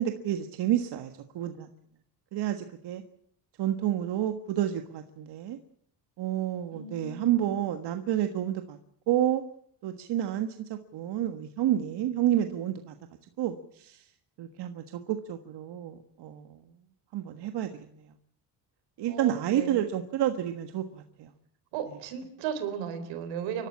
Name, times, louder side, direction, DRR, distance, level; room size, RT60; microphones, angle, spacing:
voice 1, 0.0-1.7 2.3-3.0 3.6-5.6 6.2-8.8 9.1-9.4 9.8-12.9 13.4-14.1 14.4-16.6 17.1-18.1 19.0-21.3, right 11 dB, 65° right, 7 dB, 1.6 m, -30 dB
voice 2, 6.7-7.5 19.1-19.9 21.7-23.7, right 8 dB, 90° right, 9 dB, 4.0 m, -36 dB
29.0 x 12.5 x 8.6 m, 0.67 s
cardioid pair, 90°, 43 cm